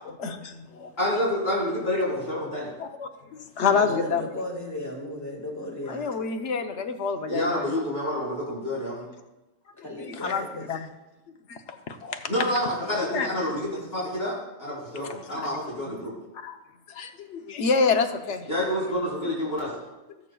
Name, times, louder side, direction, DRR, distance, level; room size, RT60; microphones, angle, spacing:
voice 1, 0.2-0.9 2.8-4.3 5.9-7.6 10.0-10.9 11.5-12.2 13.1-13.3 15.4-15.5 16.4-16.6 16.9-18.5, left 5 dB, 65° left, 6 dB, 1.0 m, -27 dB
voice 2, 1.0-2.7 7.3-9.0 12.3-16.1 18.5-19.7, left 1 dB, 50° left, -8 dB, 3.8 m, -28 dB
voice 3, 3.6-6.3 9.8-10.7, left 1 dB, 15° left, -1 dB, 1.7 m, -35 dB
19.0 x 6.9 x 2.3 m, 1.1 s
omnidirectional pair, 1.3 m